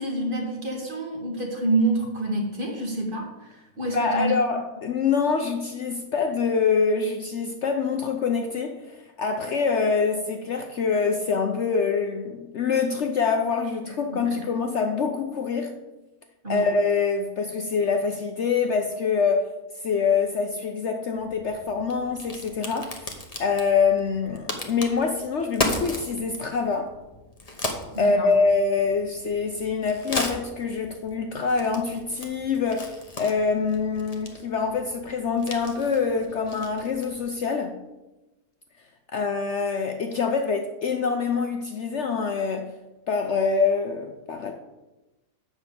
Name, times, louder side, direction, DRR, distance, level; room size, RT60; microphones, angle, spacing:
voice 1, 0.0-4.3 13.8-14.5 16.4-16.7 27.9-28.3, right 2 dB, 35° right, 1.9 m, -28 dB
voice 2, 3.9-15.8 16.5-19.5 19.8-23.1 23.4-26.9 28.0-37.8 39.1-42.7 43.1-44.5, left 5 dB, 60° left, 0.9 m, -25 dB
Crack, 21.2-37.2, left 2 dB, 25° left, 1.1 m, -36 dB
8.1 x 5.8 x 6.8 m
omnidirectional pair, 1.6 m